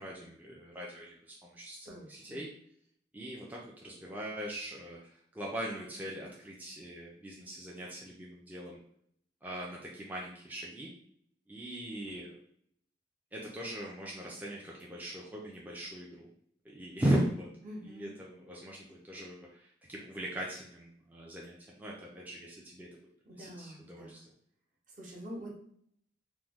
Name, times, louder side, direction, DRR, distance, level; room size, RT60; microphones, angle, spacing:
voice 1, 0.0-2.5 3.1-8.8 9.4-10.9 11.5-12.4 13.3-16.3 16.6-17.5 17.8-23.0 23.4-24.2, right 1 dB, 10° right, -4 dB, 0.3 m, -39 dB
voice 2, 1.8-2.4 17.6-18.1 23.3-24.2 25.0-25.6, equal, 45° right, -2 dB, 0.8 m, -46 dB
3.0 x 2.1 x 3.4 m, 0.66 s
head